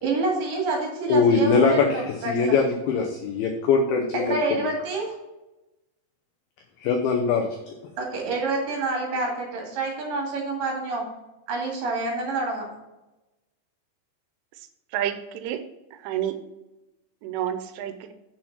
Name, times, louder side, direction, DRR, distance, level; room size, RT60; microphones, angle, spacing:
voice 1, 0.0-2.6 4.1-5.1 8.0-11.1 11.5-12.7, right 3 dB, 55° right, -1 dB, 3.4 m, -28 dB
voice 2, 1.1-4.6 6.8-7.8, left 4 dB, 85° left, 3 dB, 2.1 m, -22 dB
voice 3, 14.9-15.6 16.0-16.3 17.2-18.1, right 11 dB, 90° right, 9 dB, 3.3 m, -29 dB
7.4 x 6.3 x 5.9 m, 1.0 s
omnidirectional pair, 5.4 m